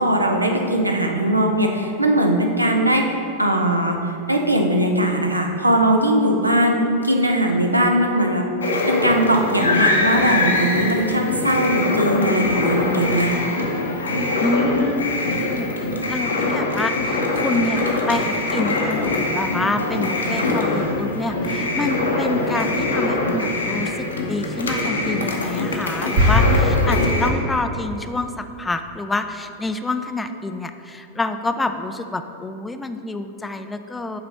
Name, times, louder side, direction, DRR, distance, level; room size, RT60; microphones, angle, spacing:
voice 1, 0.0-8.4 8.9-13.3, right 1 dB, 85° right, 2 dB, 0.6 m, -20 dB
sound 1, 8.6-27.3, left 2 dB, 75° left, 0.8 m, -23 dB
voice 2, 14.4-15.7 16.1-34.2, left 2 dB, 10° left, 8 dB, 0.4 m, -27 dB
sound 2, 26.1-27.8, left 1 dB, 55° right, 1.4 m, -19 dB
5.8 x 4.1 x 6.2 m, 2.8 s
figure-of-eight pair, 90°, 0 cm